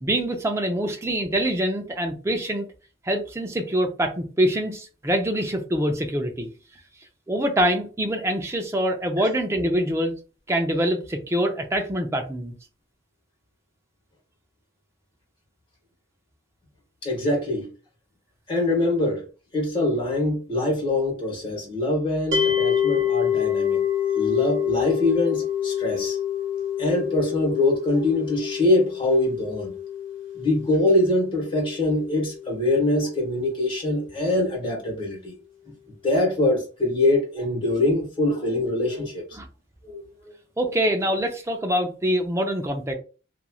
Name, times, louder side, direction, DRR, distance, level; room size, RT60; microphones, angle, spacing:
voice 1, 0.0-2.7 3.0-6.5 7.3-10.1 10.5-12.5 39.3-39.5 40.6-42.9, equal, 15° right, 0.5 m, -25 dB
voice 2, 17.0-17.7 18.5-19.2 19.5-23.8 24.1-26.2 26.8-29.7 30.3-35.3 36.0-39.2 39.8-40.3, left 2 dB, 25° left, 1.3 m, -23 dB
sound 1, 22.3-33.5, left 9 dB, 80° right, 0.8 m, -27 dB
3.0 x 2.5 x 2.3 m
head